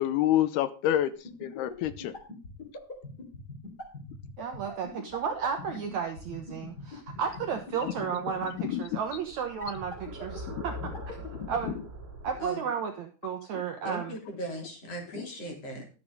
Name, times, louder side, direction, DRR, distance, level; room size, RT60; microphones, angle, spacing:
voice 1, 0.0-2.1 7.8-7.9 8.4-8.8 10.9-11.0 11.3-11.7 13.5-13.6 15.2-15.3, left 12 dB, 85° left, 13 dB, 2.8 m, -28 dB
sound 1, 1.1-8.3 9.6-11.7, left 3 dB, 25° left, 3.9 m, -40 dB
voice 2, 4.4-10.9 11.5-11.7 12.2-14.2, right 7 dB, 70° right, 5 dB, 1.8 m, -33 dB
sound 2, 5.1-12.5, equal, 35° right, 2.9 m, -45 dB
voice 3, 13.8-15.9, right 1 dB, 40° left, 1 dB, 4.2 m, -38 dB
13.0 x 7.6 x 5.3 m, 0.35 s
omnidirectional pair, 4.5 m